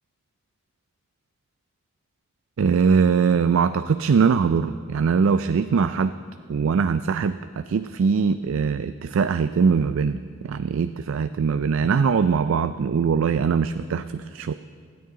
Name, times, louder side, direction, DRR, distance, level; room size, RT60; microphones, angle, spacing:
voice 1, 2.6-6.1 6.5-10.2 10.4-14.5, right 6 dB, 70° right, 11 dB, 0.4 m, -21 dB
24.0 x 9.5 x 3.8 m, 2.2 s
head